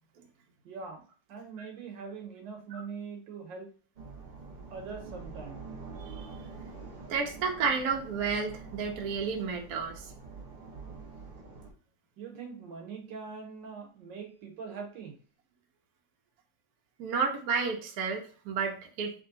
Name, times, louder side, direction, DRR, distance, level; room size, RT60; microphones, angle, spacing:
voice 1, 0.6-1.0 1.3-3.7 4.7-5.7 12.2-15.2, right 5 dB, 80° right, 3 dB, 1.6 m, -42 dB
sound 1, 4.0-11.7, right 4 dB, 40° right, 0.7 m, -46 dB
voice 2, 7.1-10.1 17.0-19.1, right 5 dB, 60° right, 2 dB, 1.1 m, -31 dB
3.6 x 3.3 x 3.8 m, 0.41 s
omnidirectional pair, 2.0 m